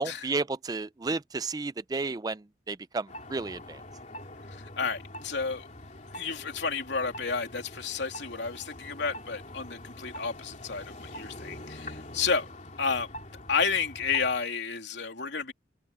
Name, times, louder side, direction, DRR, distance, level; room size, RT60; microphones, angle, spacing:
voice 1, 0.0-3.8, right 3 dB, 20° right, 0.4 m, -32 dB
sound 1, 3.1-14.4, left 1 dB, 40° left, 3.3 m, -45 dB
voice 2, 4.8-5.6 6.1-12.5 12.8-13.1 13.5-15.5, left 5 dB, 70° left, 3.2 m, -31 dB
open air
head